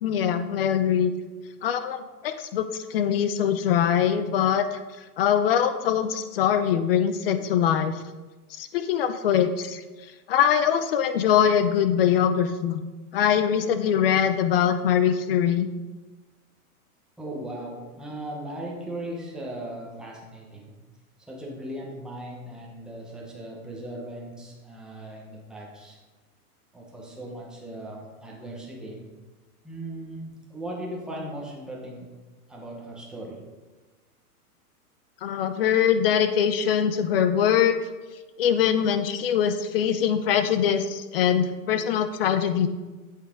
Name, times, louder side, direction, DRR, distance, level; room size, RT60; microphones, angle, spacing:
voice 1, 0.0-1.1 1.6-4.8 5.2-7.9 8.6-9.8 10.3-12.8 13.1-15.7 35.2-37.8 38.4-42.7, left 8 dB, 40° left, 10 dB, 0.6 m, -23 dB
voice 2, 17.2-20.8 21.2-26.0 26.7-29.0 29.6-32.1 32.5-33.5, right 1 dB, ahead, -3 dB, 1.0 m, -38 dB
8.3 x 8.0 x 3.8 m, 1.2 s
supercardioid pair, 165°, 45 cm